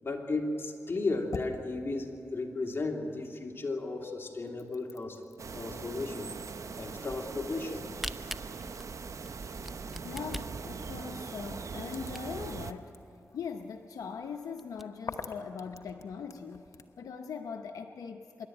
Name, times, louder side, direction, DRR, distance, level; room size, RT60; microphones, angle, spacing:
voice 1, 0.0-5.3 5.5-6.3 6.8-7.9 8.2-8.3, left 3 dB, 45° left, 1 dB, 2.8 m, -34 dB
sound 1, 0.7-3.4 3.7-17.0, left 4 dB, 65° left, 1.0 m, -50 dB
sound 2, 5.4-12.7, right 5 dB, 65° right, 0.8 m, -41 dB
Camera, 7.6-12.6 13.1-13.2 13.4-13.5 14.0-14.1 14.4-14.8, equal, 5° right, 0.7 m, -42 dB
voice 2, 10.0-13.0 13.3-16.7 17.0-18.5, left 6 dB, 90° left, 6 dB, 0.7 m, -41 dB
25.5 x 11.5 x 9.1 m, 2.8 s
cardioid pair, 50°, 6 cm